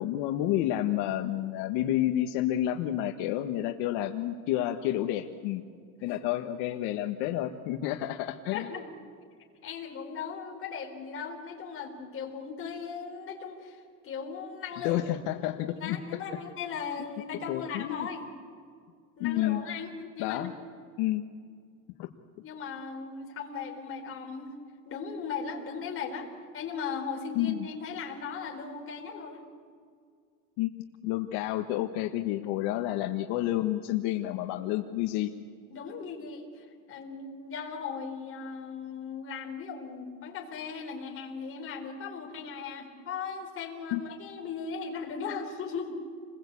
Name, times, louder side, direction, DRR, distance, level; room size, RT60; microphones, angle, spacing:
voice 1, 0.0-5.6 6.0-8.7 14.8-16.0 17.3-18.1 19.2-19.6 20.2-20.5 21.0-21.2 22.0-22.1 27.3-27.7 30.6-30.7 31.0-35.3 43.9-44.0, left 13 dB, 70° left, 4 dB, 1.4 m, -30 dB
voice 2, 8.5-8.9 9.6-15.0 15.3-18.3 19.2-19.9 20.1-20.5 22.4-24.5 24.8-29.4 35.7-46.0, left 5 dB, 30° left, 0 dB, 4.5 m, -38 dB
29.0 x 21.0 x 8.5 m, 2.2 s
cardioid pair, 165°, 41 cm